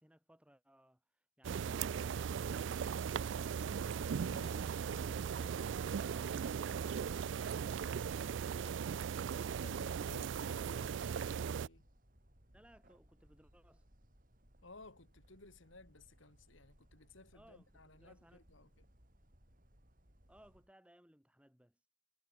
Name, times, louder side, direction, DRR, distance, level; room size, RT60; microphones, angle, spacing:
voice 1, 0.0-3.4 12.5-13.8 17.3-18.5 20.3-21.8, equal, 5° right, 5.2 m, -64 dB
sound 1, 1.4-11.7, right 7 dB, 65° right, 0.3 m, -38 dB
sound 2, 1.5-20.7, equal, 40° right, 6.0 m, -66 dB
voice 2, 3.8-5.2 9.6-11.9 14.6-18.9, left 2 dB, 70° left, 2.7 m, -58 dB
sound 3, 4.1-6.0 6.7-7.6 8.1-8.9, left 3 dB, 20° left, 4.2 m, -68 dB
head